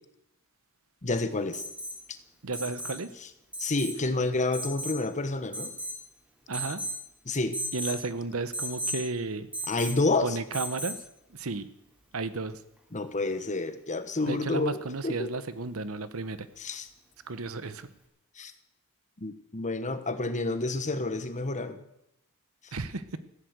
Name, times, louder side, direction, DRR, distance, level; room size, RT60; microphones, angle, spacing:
voice 1, 1.0-1.6 3.6-5.7 7.3-7.6 9.7-10.4 12.9-14.8 15.0-15.3 16.6-16.9 18.4-18.5 19.2-21.8 22.6-22.7, left 2 dB, 35° left, 10 dB, 1.2 m, -29 dB
Alarm, 1.5-2.0 2.5-3.0 3.5-4.0 4.5-5.0 5.5-6.0 6.5-7.0 7.5-8.0 8.5-9.0 9.5-10.0 10.5-11.0 12.8-12.9, right 1 dB, 5° right, 2.8 m, -35 dB
voice 2, 2.4-3.1 6.5-6.8 7.7-9.5 10.2-11.0 11.3-11.7 12.1-12.6 14.2-16.5 17.3-17.9 22.7-23.2, right 3 dB, 70° right, 13 dB, 1.0 m, -33 dB
15.0 x 10.0 x 8.1 m, 0.82 s
head